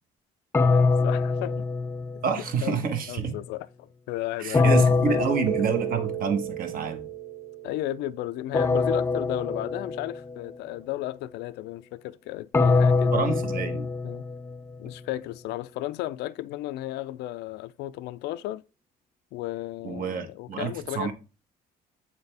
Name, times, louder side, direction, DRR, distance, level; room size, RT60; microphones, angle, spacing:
sound 1, 0.5-2.6 4.5-6.4 8.5-10.4 12.5-14.7, left 4 dB, 15° left, 0.3 m, -24 dB
voice 1, 0.6-1.6 2.6-5.2 7.6-13.1 14.0-14.2 14.8-18.6 19.3-21.1, left 15 dB, 80° left, 0.4 m, -34 dB
voice 2, 2.2-3.3 4.4-7.0 13.1-13.8 19.8-21.1, right 6 dB, 55° right, 1.2 m, -28 dB
Keyboard (musical), 5.5-8.7, right 21 dB, 75° right, 0.5 m, -35 dB
8.1 x 4.4 x 3.3 m
cardioid pair, 110°, 17 cm